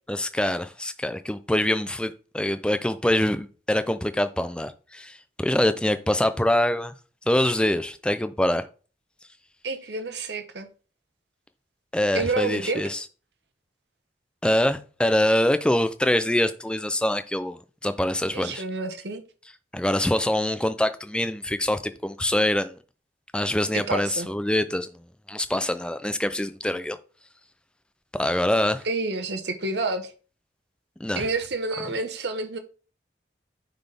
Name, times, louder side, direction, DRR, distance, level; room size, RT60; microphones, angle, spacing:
voice 1, 0.1-6.9 7.3-8.6 11.9-13.0 14.4-18.6 19.7-22.8 23.3-24.9 25.3-27.0 28.2-28.9 31.0-31.3, left 1 dB, 5° left, 0.4 m, -24 dB
voice 2, 9.6-10.7 12.1-12.8 18.3-19.2 23.7-24.3 28.8-30.1 31.2-32.6, right 3 dB, 65° right, 1.0 m, -29 dB
9.2 x 4.1 x 3.4 m
head